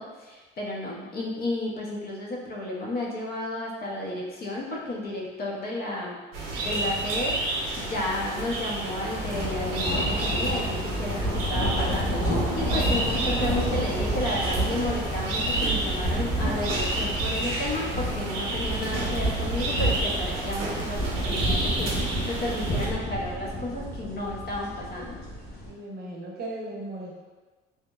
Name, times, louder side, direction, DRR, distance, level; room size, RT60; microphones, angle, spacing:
voice 1, 0.0-6.2 6.6-25.2, left 1 dB, 50° left, -3 dB, 0.6 m, -32 dB
sound 1, 6.3-22.9, right 2 dB, 90° right, 0.6 m, -31 dB
Booming Thunder in Distance, 8.6-25.7, equal, 85° left, 1.4 m, -30 dB
voice 2, 25.7-27.2, right 1 dB, 50° right, -2 dB, 0.6 m, -37 dB
2.8 x 2.0 x 2.3 m, 1.3 s
cardioid pair, 100°, 21 cm